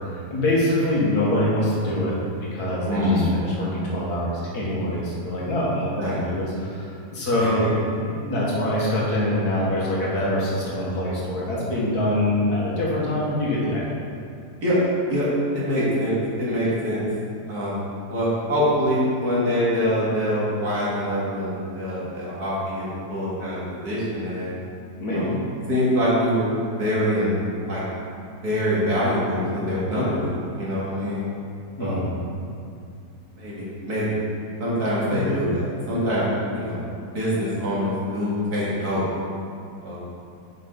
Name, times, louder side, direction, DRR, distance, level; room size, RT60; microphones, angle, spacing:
voice 1, 0.0-2.1 2.4-13.9 25.0-25.3 31.8-32.1 35.1-35.4, left 1 dB, 65° left, -6 dB, 2.1 m, -24 dB
voice 2, 2.9-3.3 6.0-6.2 7.4-7.5 14.6-14.8 15.1-15.3 15.5-17.0 17.5-17.7 18.1-24.5 25.1-25.3 25.7-26.5 26.8-27.8 28.4-31.2 31.8-32.0 33.4-34.1 34.6-36.3 36.5-36.8 37.1-39.0 39.8-40.0, equal, 65° right, -8 dB, 2.7 m, -24 dB
7.2 x 5.6 x 5.2 m, 2.4 s
omnidirectional pair, 1.8 m